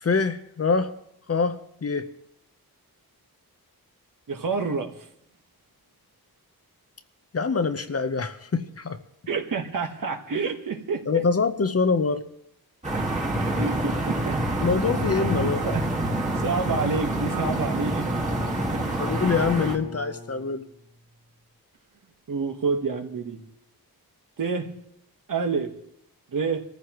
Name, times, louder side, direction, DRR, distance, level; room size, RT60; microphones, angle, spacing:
voice 1, 0.0-0.9 1.3-2.1 7.3-9.0 11.1-12.2 14.6-15.6 19.0-20.6, left 4 dB, 40° left, 9 dB, 0.9 m, -24 dB
voice 2, 4.3-4.9 9.3-11.2 13.6-14.4 15.4-18.1 18.7-19.0 22.3-23.4 24.4-24.7 25.3-25.7 26.3-26.6, right 4 dB, 60° right, 5 dB, 1.6 m, -28 dB
sound 1, 12.8-19.8, right 1 dB, 20° right, 1.9 m, -27 dB
Bowed string instrument, 15.6-20.9, equal, 15° left, 1.4 m, -40 dB
24.5 x 14.5 x 3.1 m, 0.70 s
wide cardioid pair, 130°, 37 cm